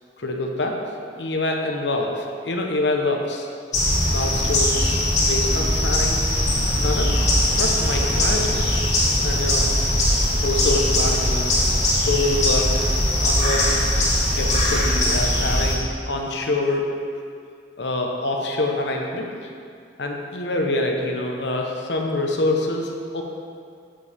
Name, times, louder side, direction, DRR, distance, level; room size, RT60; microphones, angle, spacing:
voice 1, 0.2-0.8 1.2-3.5 4.1-6.2 6.8-7.2 7.6-8.6 9.2-9.7 10.4-12.9 13.2-13.7 14.3-16.9 17.8-19.3 20.0-23.2, left 2 dB, 65° left, 1 dB, 1.0 m, -26 dB
sound 1, 3.7-15.8, left 1 dB, 40° left, 2.0 m, -20 dB
8.6 x 8.1 x 3.5 m, 2.3 s
head